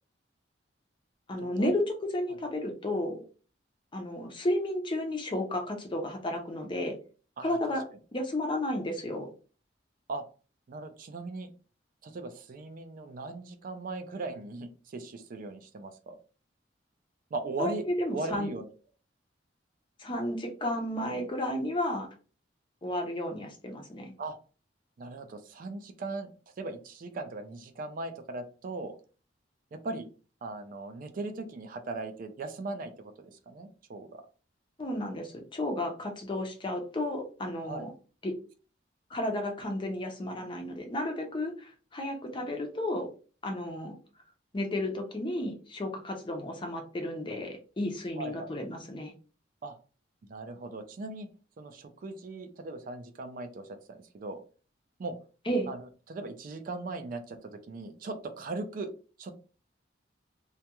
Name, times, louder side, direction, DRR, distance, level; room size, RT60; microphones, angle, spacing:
voice 1, 1.3-3.2 3.9-6.9 7.4-7.8 8.1-9.3 17.6-18.5 20.0-22.1 22.8-24.1 34.8-37.9 38.2-38.4 39.1-43.1 43.4-44.0 44.5-49.1 55.5-55.7, left 1 dB, 25° left, 3 dB, 0.5 m, -32 dB
voice 2, 10.7-11.5 12.0-16.2 17.3-17.8 18.1-18.7 24.2-24.4 25.0-26.3 26.6-29.0 29.7-30.1 30.4-34.2 37.6-37.9 48.2-48.5 49.6-49.8 50.3-51.3 51.6-54.4 55.0-55.2 55.7-55.8 56.1-58.9 59.2-59.4, right 3 dB, 50° right, 7 dB, 0.3 m, -38 dB
2.3 x 2.2 x 2.8 m, 0.37 s
head